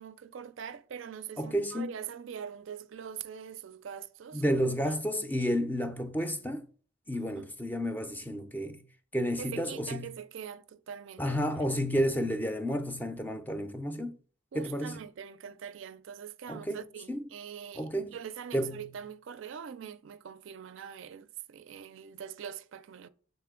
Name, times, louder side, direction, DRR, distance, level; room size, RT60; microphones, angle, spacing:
voice 1, 0.0-4.4 4.8-5.0 7.1-7.5 9.4-11.4 14.5-23.1, right 8 dB, 65° right, 0.4 m, -43 dB
voice 2, 1.4-1.9 4.3-6.7 7.1-8.8 9.1-10.1 11.2-14.2 14.5-15.0 16.5-17.3 17.8-18.2 18.5-18.9, equal, 10° left, 0.4 m, -31 dB
6.6 x 3.9 x 3.7 m
head